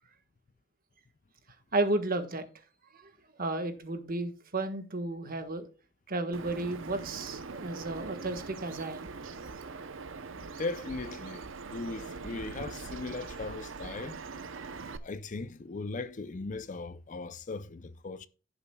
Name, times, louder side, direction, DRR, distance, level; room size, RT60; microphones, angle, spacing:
voice 1, 1.7-2.4 2.9-3.1 3.4-5.7 6.1-9.1, right 2 dB, 45° right, 1.4 m, -33 dB
Bird vocalization bird call bird song, 6.3-15.0, right 4 dB, 65° right, 0.7 m, -42 dB
voice 2, 10.4-11.4 11.7-14.2 15.0-18.3, left 3 dB, 40° left, 0.5 m, -38 dB
16.0 x 6.9 x 2.3 m
head